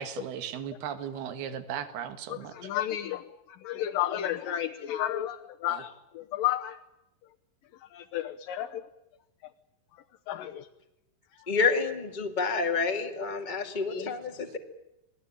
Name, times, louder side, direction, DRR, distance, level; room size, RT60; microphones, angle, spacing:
voice 1, 0.0-2.5 5.7-5.8, right 8 dB, 80° right, 10 dB, 3.7 m, -36 dB
voice 2, 2.3-6.8 7.9-8.8 10.3-10.7 13.9-14.1, left 12 dB, 70° left, 4 dB, 2.5 m, -32 dB
voice 3, 11.5-14.6, left 4 dB, 15° left, 4 dB, 1.6 m, -28 dB
27.5 x 20.0 x 8.9 m, 0.90 s
omnidirectional pair, 4.5 m